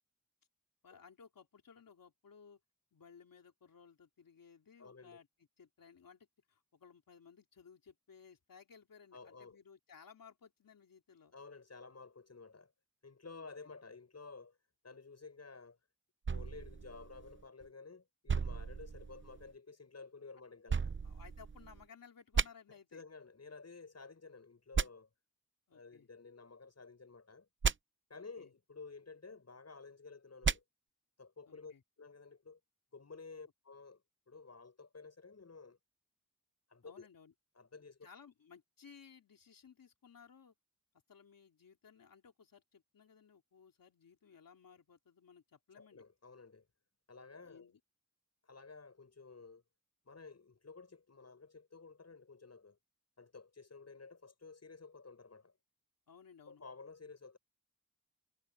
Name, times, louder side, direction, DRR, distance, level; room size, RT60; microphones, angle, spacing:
voice 1, 0.8-2.6 2.9-11.3 13.3-13.7 21.0-23.0 25.7-26.1 28.1-28.5 31.5-31.8 36.8-37.3 38.0-40.5 41.1-46.0 47.4-47.8 56.1-56.6, left 6 dB, 85° left, 3.5 m, -60 dB
voice 2, 4.8-5.2 9.1-9.6 11.3-12.7 13.0-14.6 14.8-15.8 16.3-21.0 22.7-25.1 25.7-27.5 28.1-30.6 31.2-32.6 32.9-34.0 34.3-35.8 36.7-37.1 37.6-38.1 45.7-46.7 47.1-47.7 48.4-49.6 50.1-52.8 53.2-55.5 56.5-57.4, left 4 dB, 50° left, 7.3 m, -53 dB
sound 1, 16.2-17.7 18.3-19.5 20.7-21.8 22.3-22.5 24.7-24.9 27.6-27.7 30.4-30.6, right 5 dB, 35° right, 0.7 m, -35 dB
cardioid pair, 60°, 33 cm